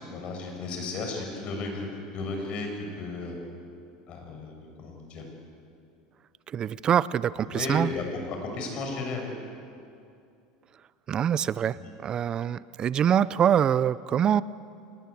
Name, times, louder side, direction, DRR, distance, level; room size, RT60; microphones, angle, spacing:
voice 1, 0.1-1.9 2.1-3.4 4.1-5.2 7.4-9.3 11.8-11.9, left 3 dB, 45° left, 3 dB, 7.2 m, -34 dB
voice 2, 6.5-7.9 11.1-14.4, right 9 dB, 35° right, 18 dB, 0.5 m, -24 dB
25.5 x 21.0 x 8.5 m, 2.5 s
supercardioid pair, 120°, 2 cm